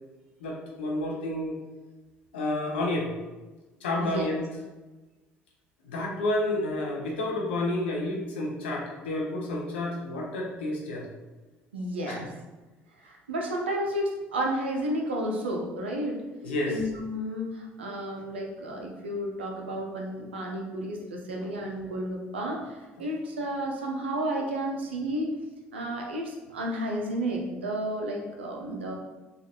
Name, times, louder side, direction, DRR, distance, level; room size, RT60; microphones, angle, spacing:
voice 1, 0.4-1.6 2.3-3.1 3.8-4.4 5.8-11.1 12.1-12.3 16.4-16.8, left 1 dB, 85° left, -1 dB, 0.6 m, -30 dB
voice 2, 11.7-12.3 13.0-16.2 16.7-25.3 25.7-28.9, right 1 dB, 90° right, 0 dB, 0.5 m, -32 dB
3.2 x 2.4 x 2.8 m, 1.2 s
hypercardioid pair, 55°, 6 cm